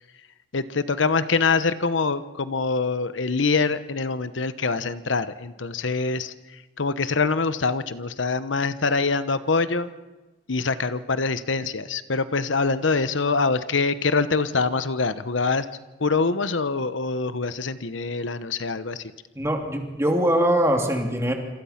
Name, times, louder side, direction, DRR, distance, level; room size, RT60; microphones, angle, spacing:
voice 1, 0.5-9.9 10.5-15.7 16.0-19.0, left 4 dB, 80° left, 13 dB, 1.0 m, -24 dB
voice 2, 19.4-21.3, right 1 dB, 15° right, 3 dB, 2.9 m, -22 dB
27.5 x 26.5 x 5.9 m, 1.2 s
head